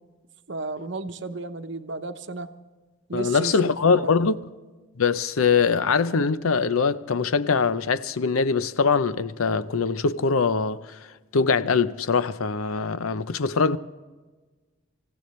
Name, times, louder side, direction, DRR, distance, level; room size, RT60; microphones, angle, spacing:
voice 1, 0.5-2.5 3.1-4.1, right 3 dB, 55° right, 0.9 m, -33 dB
voice 2, 3.1-4.4 5.0-11.0 11.3-13.8, left 5 dB, 85° left, 0.6 m, -22 dB
26.5 x 15.5 x 3.2 m
head